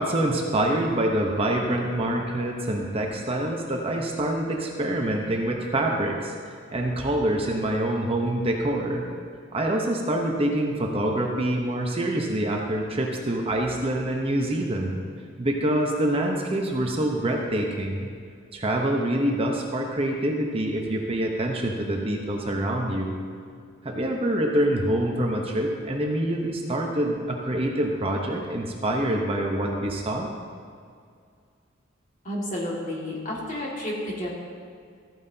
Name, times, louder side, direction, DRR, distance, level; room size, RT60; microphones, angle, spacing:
voice 1, 0.0-6.3 6.7-9.0 9.5-15.0 15.4-18.1 18.5-23.2 23.8-30.3, right 1 dB, 30° right, 0 dB, 0.8 m, -26 dB
voice 2, 32.2-34.4, left 1 dB, 40° left, -4 dB, 2.0 m, -31 dB
14.0 x 9.1 x 2.8 m, 2.2 s
head